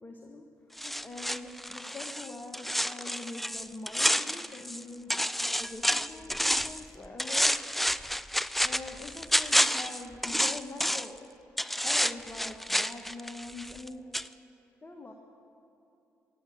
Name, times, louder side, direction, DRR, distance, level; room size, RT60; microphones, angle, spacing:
voice 1, 0.0-5.3 5.6-7.7 8.6-11.3 11.8-14.2 14.8-15.1, left 2 dB, 30° left, 3 dB, 1.3 m, -44 dB
sound 1, 0.8-4.8 5.1-6.8 7.2-11.2 11.6-13.9 14.1-14.3, equal, ahead, 0.4 m, -29 dB
15.5 x 9.9 x 7.4 m, 2.8 s
hypercardioid pair, 50°, 7 cm